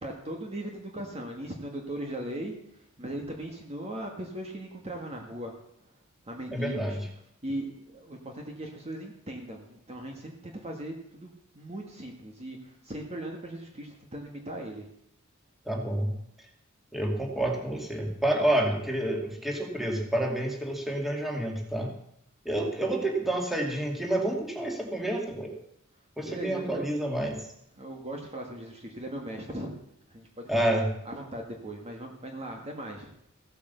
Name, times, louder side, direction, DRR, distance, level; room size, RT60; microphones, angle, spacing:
voice 1, 0.0-2.5 3.0-5.5 6.3-7.0 7.4-14.9 26.2-26.8 27.8-29.7 30.1-30.7 31.1-33.1, right 1 dB, 30° right, 1 dB, 1.6 m, -38 dB
voice 2, 6.5-7.0 15.7-16.1 16.9-21.9 22.5-25.5 26.2-27.5 30.5-30.9, right 1 dB, ahead, 0 dB, 2.3 m, -29 dB
15.5 x 8.4 x 6.8 m, 0.74 s
head